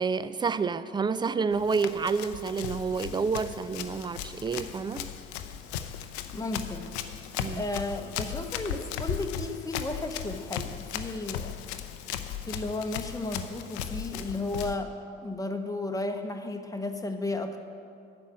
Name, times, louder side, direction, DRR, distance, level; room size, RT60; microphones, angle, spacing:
voice 1, 0.0-5.1 7.4-7.6, right 5 dB, 15° right, 15 dB, 0.4 m, -29 dB
Run, 1.5-14.8, left 9 dB, 80° left, 0.6 m, -37 dB
voice 2, 6.3-6.9 7.5-11.6 12.5-14.9 15.2-17.6, left 2 dB, 10° left, 5 dB, 1.0 m, -34 dB
9.2 x 6.1 x 8.1 m, 2.5 s
hypercardioid pair, 45°, 33 cm